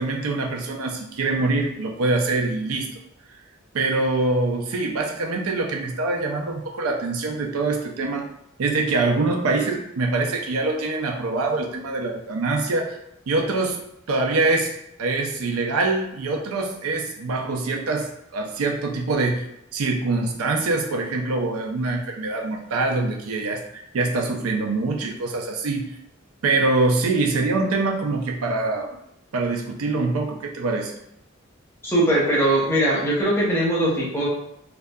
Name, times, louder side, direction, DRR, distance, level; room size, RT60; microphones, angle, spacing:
voice 1, 0.0-2.9 3.7-8.3 8.6-13.0 13.3-13.8 14.1-19.5 19.7-25.8 26.4-29.0 29.3-30.9, right 3 dB, 90° right, 2 dB, 0.5 m, -24 dB
voice 2, 31.8-34.3, right 1 dB, 10° left, -5 dB, 0.6 m, -20 dB
2.6 x 2.3 x 2.2 m, 0.78 s
head